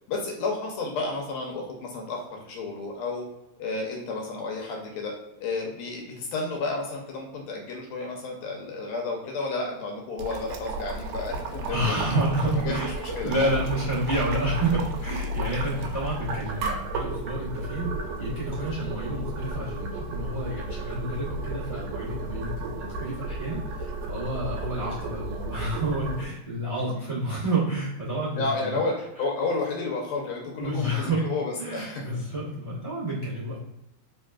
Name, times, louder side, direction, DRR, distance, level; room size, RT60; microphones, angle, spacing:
voice 1, 0.1-3.3 3.6-5.1 5.4-12.2 12.6-13.3 15.7-15.8 26.9-27.0 28.4-32.2, left 3 dB, 70° left, 0 dB, 1.9 m, -31 dB
Boiling, 10.2-26.3, right 1 dB, 85° right, 1.9 m, -33 dB
voice 2, 11.7-12.9 13.2-17.9 18.2-28.8 30.6-31.2 31.6-33.6, right 1 dB, 50° right, -7 dB, 0.4 m, -29 dB
4.0 x 3.6 x 2.4 m, 0.90 s
omnidirectional pair, 3.4 m